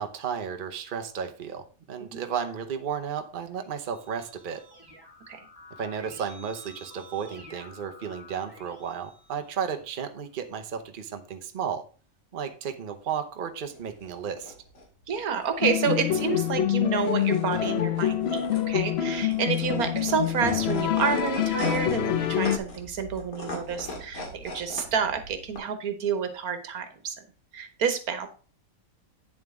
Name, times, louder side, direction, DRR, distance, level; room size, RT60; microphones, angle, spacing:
voice 1, 0.0-4.6 5.7-11.8 12.3-14.5, right 7 dB, 40° right, 6 dB, 1.0 m, -33 dB
Keyboard (musical), 3.5-10.1, left 1 dB, 15° right, 2.2 m, -51 dB
sound 1, 13.6-25.6, left 1 dB, 75° left, 2.6 m, -40 dB
voice 2, 15.1-27.1 27.5-28.3, right 6 dB, 80° right, 9 dB, 1.6 m, -29 dB
sound 2, 15.6-22.6, left 10 dB, 55° left, 0.8 m, -26 dB
9.1 x 7.3 x 3.6 m, 0.38 s
omnidirectional pair, 1.5 m